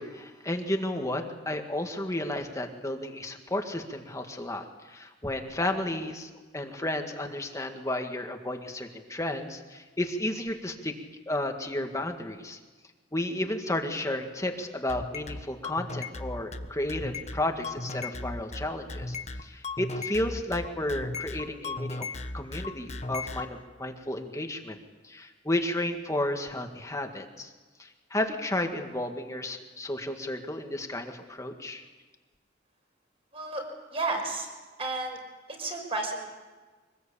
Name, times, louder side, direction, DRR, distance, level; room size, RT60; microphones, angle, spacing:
voice 1, 0.0-11.0 11.3-12.6 13.1-19.2 19.4-22.1 22.3-24.8 25.0-27.5 27.8-31.8, left 1 dB, 15° left, 4 dB, 1.9 m, -32 dB
sound 1, 14.9-23.5, left 3 dB, 35° left, 1.3 m, -36 dB
voice 2, 33.3-33.6 33.9-34.5 34.8-35.2 35.5-36.3, right 2 dB, 30° right, 3 dB, 5.3 m, -32 dB
25.0 x 20.0 x 8.6 m, 1.3 s
head